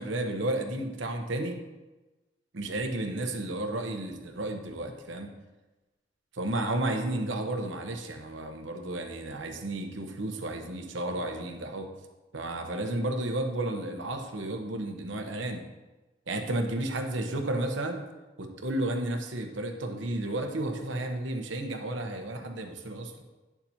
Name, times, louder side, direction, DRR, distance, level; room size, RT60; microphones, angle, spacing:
voice 1, 0.0-1.6 2.5-5.3 6.4-11.9 12.3-15.6 16.3-18.0 18.4-23.3, right 1 dB, 90° right, 4 dB, 1.0 m, -32 dB
10.0 x 7.2 x 2.8 m, 1.2 s
head